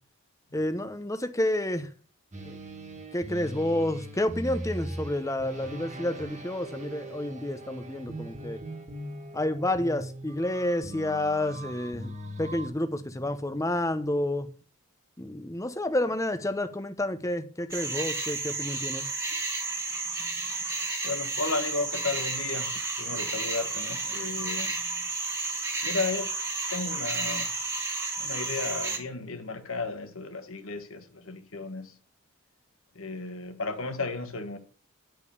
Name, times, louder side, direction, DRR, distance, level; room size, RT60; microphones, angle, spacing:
voice 1, 0.5-1.9 2.4-2.6 3.1-8.6 9.3-12.1 12.4-14.5 15.2-19.1, left 1 dB, 15° left, 0.8 m, -29 dB
sound 1, 2.3-12.7, right 1 dB, 30° right, 1.7 m, -40 dB
sound 2, 17.7-29.0, right 3 dB, 10° right, 1.6 m, -32 dB
voice 2, 20.2-25.0 25.8-26.3 26.7-27.5 28.2-31.9 32.9-34.6, left 3 dB, 65° left, 1.3 m, -34 dB
10.5 x 5.2 x 6.8 m
head